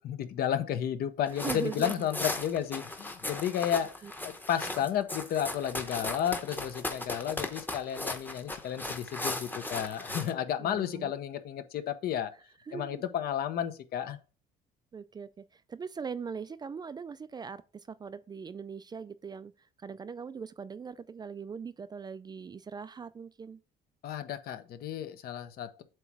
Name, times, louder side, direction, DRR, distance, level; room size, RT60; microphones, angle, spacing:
voice 1, 0.0-12.3 12.7-14.2 24.0-25.8, left 9 dB, 65° left, 0.8 m, -32 dB
sound 1, 1.3-10.3, left 2 dB, 10° left, 0.9 m, -37 dB
voice 2, 1.4-2.1 4.0-4.1 4.7-4.8 10.6-11.1 12.7-13.0 14.9-17.6 17.9-19.5 19.8-23.6, right 6 dB, 25° right, 0.3 m, -40 dB
7.7 x 3.0 x 4.8 m
cardioid pair, 110°, 17 cm